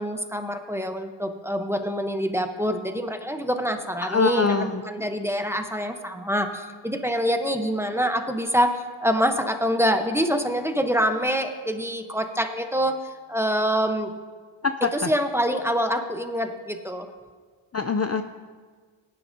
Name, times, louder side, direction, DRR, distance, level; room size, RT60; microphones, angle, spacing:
voice 1, 0.0-13.0 13.3-14.1 14.9-17.1, equal, 5° right, 6 dB, 0.9 m, -25 dB
voice 2, 4.0-4.8 14.6-14.7 17.7-18.2, left 5 dB, 35° left, 8 dB, 0.4 m, -23 dB
17.5 x 10.5 x 2.7 m, 1.5 s
wide cardioid pair, 50°, 47 cm